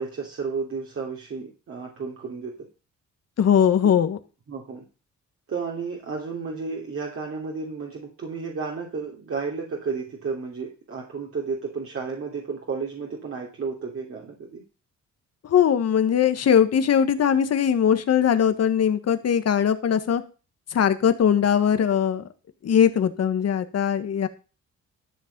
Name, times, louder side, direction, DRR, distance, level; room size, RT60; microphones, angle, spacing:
voice 1, 0.0-2.5 4.5-4.8 5.5-14.6, right 5 dB, 45° right, -2 dB, 3.0 m, -32 dB
voice 2, 3.4-4.2 15.4-20.2 20.7-22.3 22.6-24.3, left 8 dB, 55° left, 10 dB, 1.5 m, -20 dB
13.5 x 6.6 x 5.3 m, 0.34 s
cardioid pair, 90°, 30 cm